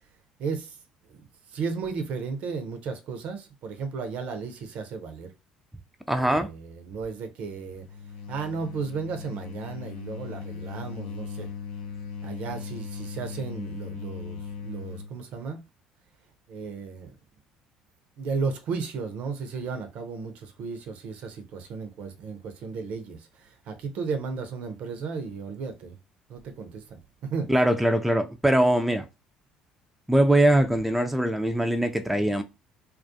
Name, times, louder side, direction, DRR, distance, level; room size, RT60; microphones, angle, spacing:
voice 1, 0.4-0.8 1.1-5.3 6.1-7.8 8.3-11.5 12.2-15.6 16.5-17.1 18.2-26.0 26.3-27.5, right 5 dB, 55° right, 0.5 m, -34 dB
voice 2, 6.1-6.5 27.5-29.1 30.1-32.4, right 1 dB, 5° right, 0.4 m, -22 dB
sound 1, 7.4-15.2, left 5 dB, 65° left, 0.4 m, -38 dB
2.3 x 2.3 x 2.5 m
figure-of-eight pair, 55°, 3 cm